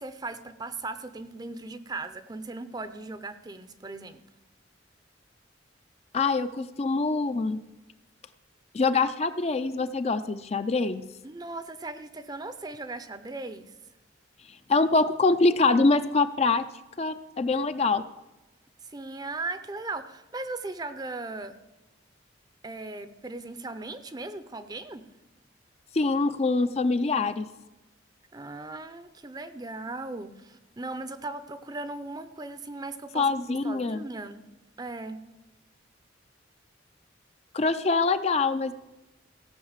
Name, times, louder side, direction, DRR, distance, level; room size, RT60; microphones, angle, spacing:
voice 1, 0.0-4.2 11.2-13.7 18.8-21.5 22.6-25.1 28.3-34.4 34.8-35.2, right 2 dB, 20° right, 11 dB, 0.6 m, -38 dB
voice 2, 6.1-7.6 8.7-11.0 14.7-16.6 17.0-18.0 25.9-27.5 33.1-34.0 37.5-38.7, left 3 dB, 35° left, 10 dB, 0.4 m, -24 dB
16.0 x 5.6 x 7.3 m, 1.0 s
head